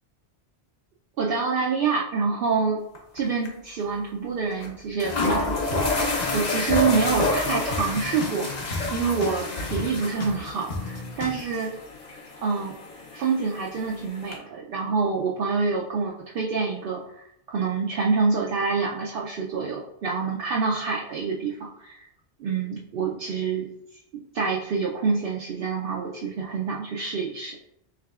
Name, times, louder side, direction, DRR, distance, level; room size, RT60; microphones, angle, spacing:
voice 1, 1.2-2.8 3.1-11.7 12.4-12.7 13.1-22.0 22.4-23.7 24.3-27.6, right 5 dB, 65° right, -3 dB, 0.7 m, -27 dB
sound 1, 2.9-3.2 3.4-3.5 4.6-4.7 5.0-14.4, left 2 dB, 45° left, 0.8 m, -29 dB
sound 2, 5.0-5.4 5.7-9.4 9.7-11.4, left 3 dB, 70° left, 1.1 m, -35 dB
4.7 x 3.2 x 2.3 m, 0.78 s
omnidirectional pair, 1.1 m